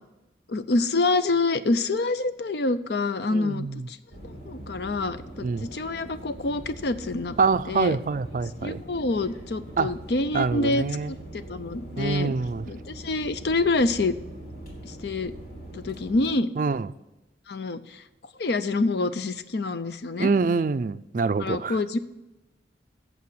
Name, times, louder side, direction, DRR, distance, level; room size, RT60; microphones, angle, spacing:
voice 1, 0.5-4.0 4.2-7.4 7.7-8.0 8.6-12.3 12.7-14.1 14.8-15.3 15.7-16.5 17.5-18.0 18.4-20.3 21.4-22.0, left 3 dB, 65° left, 0.6 m, -27 dB
voice 2, 3.3-3.9 5.4-5.7 7.4-8.8 9.8-9.9 10.3-11.1 12.0-12.7 16.6-16.9 20.2-21.8, right 4 dB, 45° right, 0.3 m, -25 dB
sound 1, 4.1-16.3, right 1 dB, 45° left, 3.1 m, -42 dB
8.5 x 7.2 x 7.8 m
head